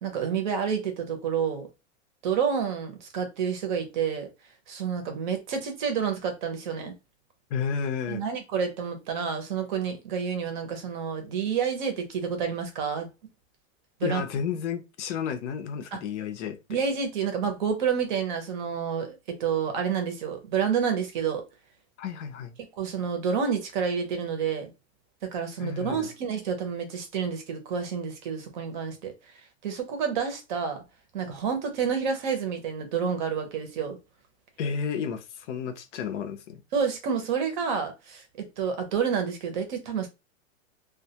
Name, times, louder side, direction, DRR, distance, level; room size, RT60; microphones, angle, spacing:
voice 1, 0.0-1.7 2.2-4.3 4.7-6.9 8.1-13.1 14.0-14.2 15.9-16.0 16.7-21.4 22.8-24.7 25.2-29.1 29.6-30.8 31.1-34.0 36.7-40.1, right 6 dB, 40° right, 0.6 m, -29 dB
voice 2, 7.5-8.2 14.0-16.8 22.0-22.5 25.6-26.1 34.6-36.6, left 6 dB, 70° left, 0.6 m, -32 dB
2.2 x 2.1 x 2.8 m
supercardioid pair, 170°, 38 cm